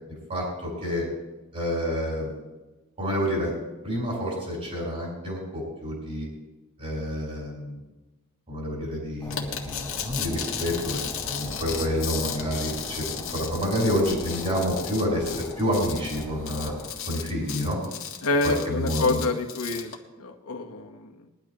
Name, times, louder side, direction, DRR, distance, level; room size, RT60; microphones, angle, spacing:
voice 1, 0.3-1.1 1.5-2.3 3.0-3.5 3.8-6.3 6.8-7.8 8.5-11.0 11.3-13.0 13.3-16.7 17.1-17.8 18.4-19.2, equal, 35° right, -4 dB, 4.4 m, -28 dB
sound 1, 9.2-16.9, left 1 dB, 10° left, 1.9 m, -40 dB
sound 2, 9.3-19.9, left 9 dB, 65° left, 1.8 m, -35 dB
voice 2, 18.2-19.9 20.2-21.1, left 3 dB, 90° left, 2 dB, 1.4 m, -27 dB
21.0 x 11.5 x 3.1 m, 1.1 s
head